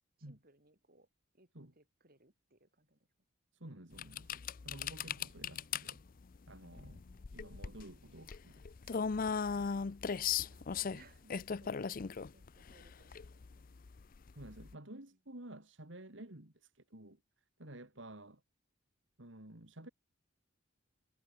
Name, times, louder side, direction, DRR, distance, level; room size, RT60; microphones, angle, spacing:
voice 1, 0.2-1.1 1.3-3.1 6.9-7.3 9.8-10.0 10.3-13.6, right 2 dB, 45° right, 6.0 m, -65 dB
voice 2, 3.5-6.0 6.5-7.0 7.3-9.0 9.5-9.7 14.3-17.2 17.6-18.4 19.2-19.9, right 1 dB, 65° right, 3.1 m, -52 dB
sound 1, 4.0-14.7, left 6 dB, 45° left, 0.5 m, -38 dB
head